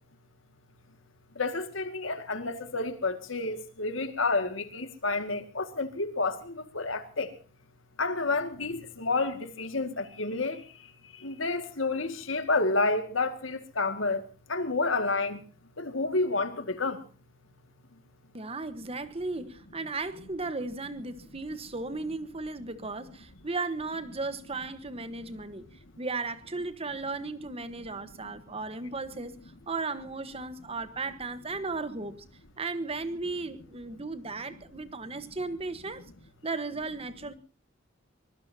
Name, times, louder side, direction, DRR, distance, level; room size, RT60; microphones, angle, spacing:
voice 1, 1.4-7.3 8.0-14.2 14.5-15.4 15.8-17.0 25.3-25.4, left 3 dB, 85° left, 2.1 m, -30 dB
voice 2, 18.3-29.4 29.7-32.2 32.6-36.0 36.4-37.3, right 3 dB, 30° right, 1.3 m, -35 dB
24.0 x 21.5 x 2.8 m
head